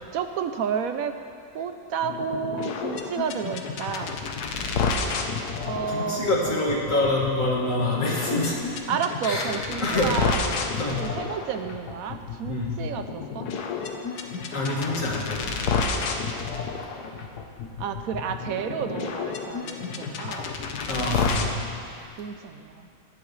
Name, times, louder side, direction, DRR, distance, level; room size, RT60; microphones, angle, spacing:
voice 1, 0.1-1.2 1.5-4.2 5.7-7.2 8.9-10.6 11.0-13.5 17.8-20.6 21.4-21.5 22.2-22.9, right 7 dB, 75° right, 8 dB, 1.0 m, -31 dB
sound 1, 2.0-21.5, left 5 dB, 90° left, 1.4 m, -31 dB
voice 2, 5.8-8.6 9.2-9.5 9.8-10.1 10.8-11.0 12.5-12.8 14.5-15.6 20.9-21.5, left 2 dB, 55° left, -4 dB, 2.4 m, -26 dB
17.5 x 12.0 x 3.2 m, 2.4 s
omnidirectional pair, 1.6 m